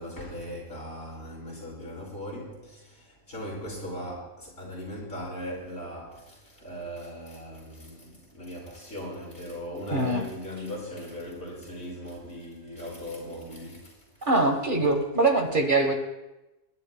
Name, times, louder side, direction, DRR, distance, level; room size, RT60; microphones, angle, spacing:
voice 1, 0.0-2.6 3.3-6.1 6.6-8.1 8.3-13.8, equal, 60° left, 4.9 m, -38 dB
voice 2, 9.9-10.2 14.2-15.9, right 2 dB, 40° right, 1.3 m, -23 dB
28.0 x 11.0 x 2.2 m
omnidirectional pair, 1.3 m